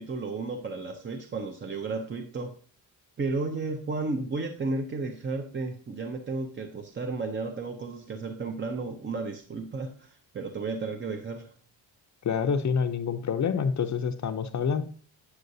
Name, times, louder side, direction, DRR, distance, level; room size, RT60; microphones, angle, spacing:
voice 1, 0.0-2.6 3.2-11.5, right 3 dB, 25° right, 5 dB, 0.5 m, -33 dB
voice 2, 12.2-14.8, left 6 dB, 40° left, 8 dB, 0.5 m, -27 dB
8.5 x 7.8 x 2.6 m, 0.43 s
wide cardioid pair, 170°, 44 cm